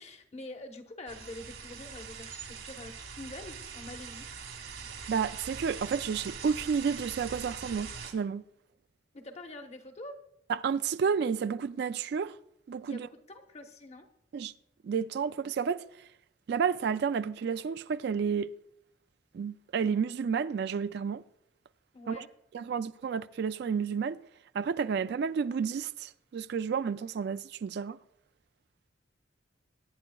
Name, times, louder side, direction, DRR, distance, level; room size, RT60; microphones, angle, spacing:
voice 1, 0.0-4.3 9.1-10.2 12.9-14.1 21.9-22.3, left 1 dB, 35° left, 1.0 m, -45 dB
sound 1, 1.1-8.1, right 6 dB, 85° right, 2.3 m, -43 dB
voice 2, 5.1-8.4 10.5-12.4 12.7-13.1 14.3-14.5 14.8-15.8 16.5-18.5 19.3-21.2 22.1-22.2 22.5-24.2 24.5-28.0, right 6 dB, 55° right, 0.3 m, -31 dB
22.5 x 9.3 x 2.3 m
head